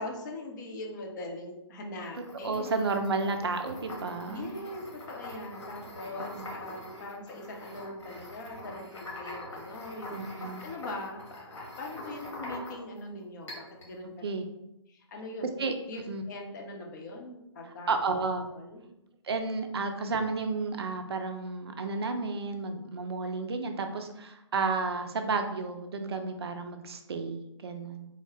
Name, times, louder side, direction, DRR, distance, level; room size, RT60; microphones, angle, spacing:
voice 1, 0.0-2.7 4.2-14.2 14.9-15.5 15.9-17.9 18.5-18.8, left 2 dB, 35° left, 1 dB, 0.6 m, -41 dB
sound 1, 2.0-13.0 13.5-13.9, left 1 dB, 65° left, 1.2 m, -44 dB
voice 2, 2.4-4.6 6.2-6.5 10.1-10.6 14.2-14.4 15.6-15.7 16.1-16.2 17.9-18.5 19.2-28.1, right 4 dB, 55° right, 6 dB, 0.4 m, -32 dB
3.7 x 2.1 x 3.3 m, 0.86 s
figure-of-eight pair, 135°, 16 cm